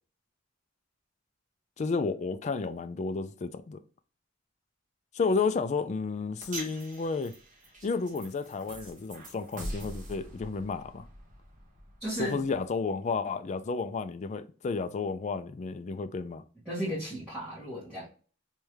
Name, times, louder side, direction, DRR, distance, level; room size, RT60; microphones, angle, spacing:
voice 1, 1.8-3.8 5.1-7.3 7.8-11.1 12.2-16.4, left 4 dB, 35° left, 0.3 m, -32 dB
sound 1, 6.4-12.8, right 1 dB, 40° right, 1.3 m, -44 dB
voice 2, 12.0-12.4 16.7-18.1, equal, 5° right, 1.9 m, -34 dB
3.5 x 3.1 x 3.1 m
head